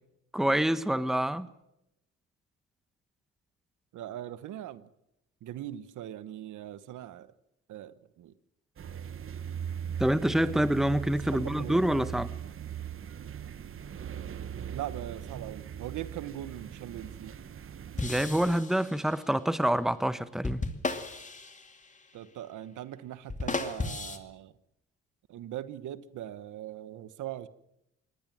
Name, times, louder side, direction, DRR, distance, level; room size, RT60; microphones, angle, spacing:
voice 1, 0.3-1.5 10.0-12.3 18.0-20.6, right 1 dB, ahead, 1.2 m, -27 dB
voice 2, 3.9-4.9 5.4-7.3 7.7-8.3 11.3-11.8 14.7-17.3 22.1-24.5 25.3-27.5, right 12 dB, 80° right, 1.2 m, -40 dB
sound 1, 8.8-18.6, right 8 dB, 45° right, 1.1 m, -40 dB
sound 2, 18.0-19.3 20.4-22.1 23.3-24.2, left 3 dB, 25° left, 2.5 m, -35 dB
23.0 x 18.5 x 7.5 m
cardioid pair, 90°, 30 cm